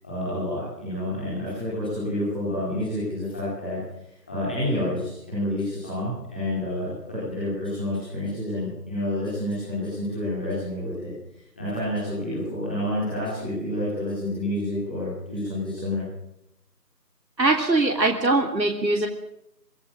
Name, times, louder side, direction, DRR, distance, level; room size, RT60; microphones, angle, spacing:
voice 1, 0.0-3.8 4.0-16.0, left 1 dB, 5° left, -11 dB, 4.4 m, -29 dB
voice 2, 17.4-19.1, right 2 dB, 85° right, 3 dB, 3.3 m, -21 dB
25.0 x 16.0 x 7.6 m, 0.81 s
figure-of-eight pair, 175°, 50 cm